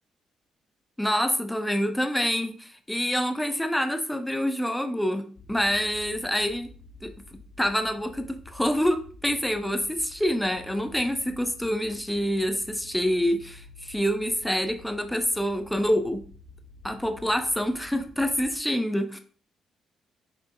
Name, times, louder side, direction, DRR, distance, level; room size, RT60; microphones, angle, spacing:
voice 1, 1.0-6.7 7.0-16.2 16.8-19.2, equal, 5° left, 6 dB, 0.5 m, -27 dB
sound 1, 5.4-18.6, left 3 dB, 45° left, 0.6 m, -50 dB
5.2 x 3.7 x 2.2 m, 0.42 s
cardioid pair, 90°, 0 cm